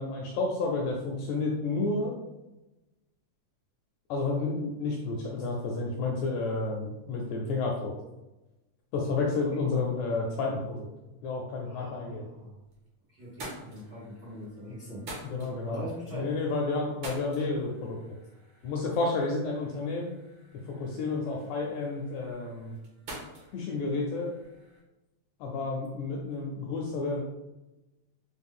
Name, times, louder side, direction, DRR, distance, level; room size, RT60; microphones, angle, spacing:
voice 1, 0.0-2.1 4.1-7.9 8.9-10.9 11.2-12.2 15.2-15.8 16.1-18.2 18.6-20.1 20.7-22.7 23.5-24.3 25.4-27.2, left 3 dB, 80° left, -1 dB, 1.7 m, -31 dB
voice 2, 11.6-12.5 13.1-15.1 15.6-16.3, equal, 85° right, -9 dB, 0.9 m, -41 dB
sound 1, 12.3-12.9 13.2-24.8, right 1 dB, 70° right, 1.2 m, -48 dB
5.1 x 2.1 x 3.6 m, 1.0 s
omnidirectional pair, 3.8 m